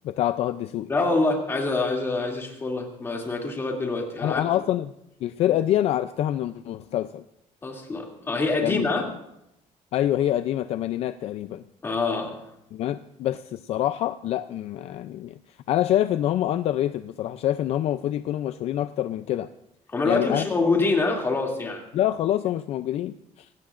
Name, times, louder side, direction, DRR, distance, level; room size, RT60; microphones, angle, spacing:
voice 1, 0.0-0.9 4.2-4.9 5.2-7.2 8.6-9.1 9.9-11.6 12.7-15.4 15.7-19.5 20.0-20.4 21.9-23.5, left 12 dB, 55° left, 11 dB, 0.4 m, -26 dB
voice 2, 0.9-4.5 7.6-9.1 11.8-12.5 19.9-21.8, left 3 dB, 20° left, 0 dB, 2.6 m, -25 dB
25.0 x 17.5 x 2.5 m, 0.80 s
cardioid pair, 175°, 13 cm